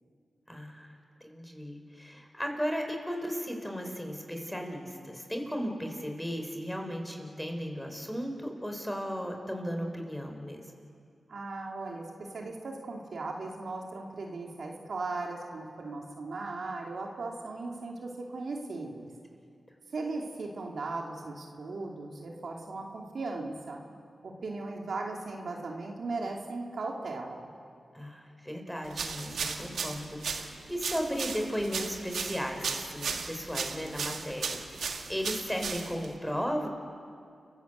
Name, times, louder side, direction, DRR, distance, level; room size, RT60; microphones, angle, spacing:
voice 1, 0.5-0.9 1.2-10.6 27.9-36.7, equal, 5° left, 3 dB, 4.8 m, -35 dB
voice 2, 11.3-19.1 19.9-23.8 24.2-27.5, right 3 dB, 70° right, 0 dB, 2.8 m, -37 dB
sound 1, 28.9-36.2, right 5 dB, 85° right, 1.6 m, -36 dB
30.0 x 14.5 x 8.2 m, 2.3 s
cardioid pair, 45°, 0 cm